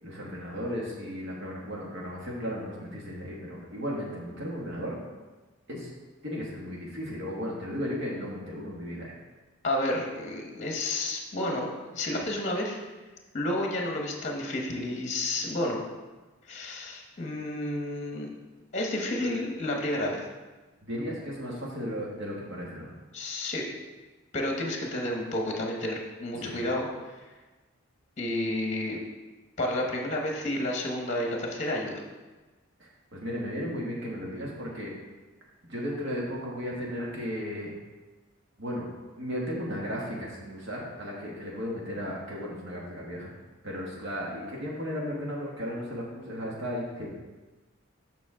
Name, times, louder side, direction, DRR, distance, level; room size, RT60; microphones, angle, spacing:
voice 1, 0.0-5.0 5.7-5.9 6.2-9.1 19.2-19.3 20.8-22.9 26.3-26.6 32.8-34.9 35.6-37.7 38.6-38.9 39.2-43.3 43.6-47.1, equal, 55° right, -3 dB, 1.3 m, -35 dB
voice 2, 9.6-12.8 13.3-15.8 16.5-18.3 18.7-20.2 23.1-23.6 24.3-26.9 28.2-29.0 29.6-32.0, left 1 dB, 35° left, 1 dB, 0.9 m, -30 dB
7.0 x 5.9 x 3.7 m, 1.2 s
head